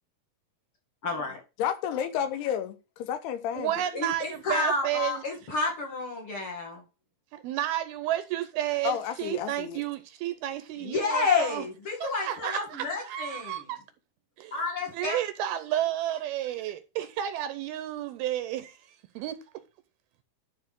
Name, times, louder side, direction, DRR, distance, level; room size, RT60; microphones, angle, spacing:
voice 1, 1.0-1.4 3.9-6.8 10.8-13.6 14.5-15.2, left 4 dB, 40° left, 2.3 m, -30 dB
voice 2, 1.6-3.7 8.8-9.8, left 9 dB, 80° left, 2.9 m, -31 dB
voice 3, 3.5-5.2 7.3-11.6 12.0-13.8 14.4-14.6 14.9-19.6, right 12 dB, 80° right, 2.3 m, -32 dB
11.0 x 4.8 x 3.7 m
omnidirectional pair, 4.8 m